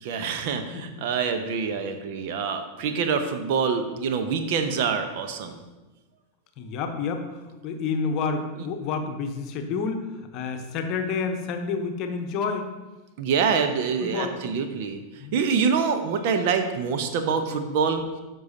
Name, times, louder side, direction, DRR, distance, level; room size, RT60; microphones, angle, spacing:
voice 1, 0.0-5.6 13.2-15.0 15.3-18.0, right 6 dB, 50° right, 7 dB, 0.8 m, -25 dB
voice 2, 0.7-1.1 2.8-2.9 6.6-12.7 14.0-14.4 15.2-15.4, left 5 dB, 40° left, 5 dB, 0.9 m, -29 dB
12.5 x 5.5 x 2.8 m, 1.1 s
figure-of-eight pair, 90°, 0 cm